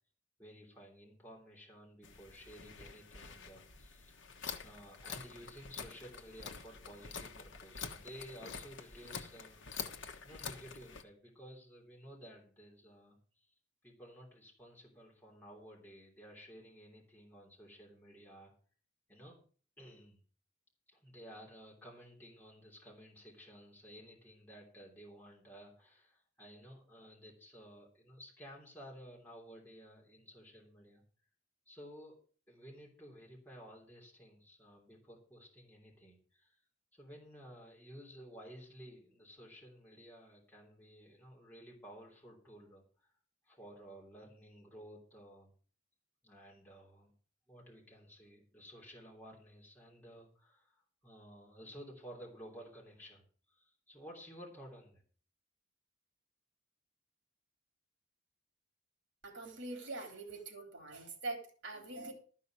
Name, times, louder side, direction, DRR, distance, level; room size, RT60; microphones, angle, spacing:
voice 1, 0.4-4.3 4.6-9.7 10.2-13.5 13.8-18.5 19.1-19.4 19.8-20.2 20.9-31.0 31.7-32.1 32.5-36.6 36.9-43.1 43.4-45.5 46.2-47.1 47.5-55.0, equal, 10° left, -3 dB, 3.3 m, -54 dB
sound 1, 2.0-11.0, left 5 dB, 65° left, 1.2 m, -47 dB
voice 2, 59.2-62.1, right 2 dB, 60° right, 4 dB, 3.5 m, -44 dB
13.0 x 5.5 x 7.7 m, 0.41 s
head